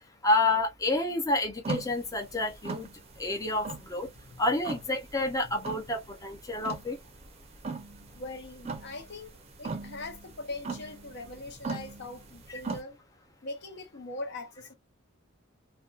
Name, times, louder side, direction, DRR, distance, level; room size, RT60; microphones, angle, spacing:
voice 1, 0.2-2.9 3.2-4.1 4.4-7.0, left 2 dB, 15° left, 0.5 m, -29 dB
sound 1, 1.6-12.8, right 4 dB, 30° right, 0.5 m, -40 dB
voice 2, 8.1-9.3 9.6-13.0 13.4-14.7, left 2 dB, 55° left, 0.6 m, -41 dB
2.6 x 2.2 x 2.3 m
head